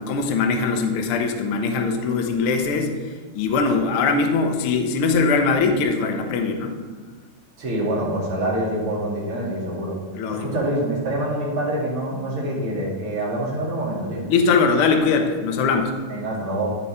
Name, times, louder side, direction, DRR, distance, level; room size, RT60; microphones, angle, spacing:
voice 1, 0.0-2.9 3.3-6.8 10.1-10.5 14.3-15.9, left 4 dB, 85° left, 4 dB, 1.1 m, -21 dB
voice 2, 7.6-9.9 10.3-14.2 16.1-16.7, right 1 dB, 45° right, -4 dB, 2.8 m, -26 dB
13.5 x 4.5 x 4.3 m, 1.5 s
omnidirectional pair, 3.7 m